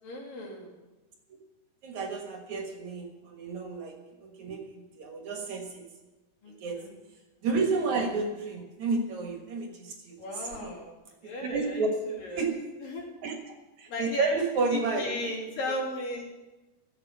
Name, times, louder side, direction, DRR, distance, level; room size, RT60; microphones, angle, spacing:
voice 1, 0.0-0.8 6.4-6.9 10.2-10.9 11.2-11.9 12.2-12.4 12.8-13.0 13.9-14.3 14.7-16.2, left 1 dB, 65° left, -3 dB, 4.9 m, -36 dB
voice 2, 1.8-5.8 6.5-6.8 7.4-10.7 11.2-11.9 12.4-12.5 13.2-13.3 13.8-15.0, right 4 dB, 60° right, 2 dB, 2.6 m, -31 dB
15.5 x 8.1 x 8.4 m, 1.1 s
omnidirectional pair, 4.3 m